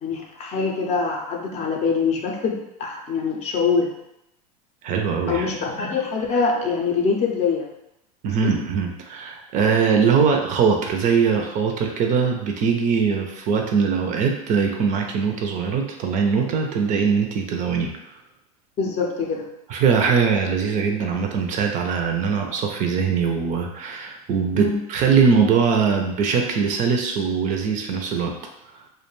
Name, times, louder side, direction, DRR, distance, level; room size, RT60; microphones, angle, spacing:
voice 1, 0.0-3.9 5.3-7.7 8.4-8.6 18.8-19.5 24.5-24.8, left 5 dB, 35° left, 0 dB, 0.5 m, -24 dB
voice 2, 4.8-5.5 8.2-17.9 19.7-28.3, right 6 dB, 40° right, 3 dB, 0.4 m, -21 dB
2.3 x 2.1 x 3.0 m, 0.85 s
hypercardioid pair, 110°, 20 cm